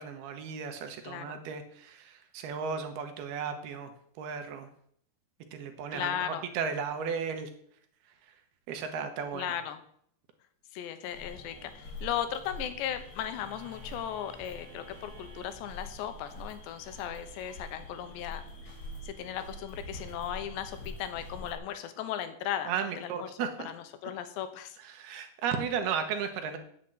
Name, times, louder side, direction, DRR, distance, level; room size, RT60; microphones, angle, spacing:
voice 1, 0.0-3.9 4.2-4.7 5.5-7.5 8.7-9.5 22.7-23.7 24.8-26.6, right 6 dB, 70° right, 6 dB, 2.9 m, -35 dB
voice 2, 1.0-1.4 5.9-6.5 9.3-9.8 10.7-18.4 19.0-24.8, left 10 dB, 85° left, 10 dB, 3.3 m, -37 dB
sound 1, 11.1-21.6, left 1 dB, 40° left, 4.3 m, -46 dB
sound 2, 13.3-20.1, right 5 dB, 55° right, 3.5 m, -53 dB
9.1 x 8.0 x 7.9 m, 0.64 s
omnidirectional pair, 5.0 m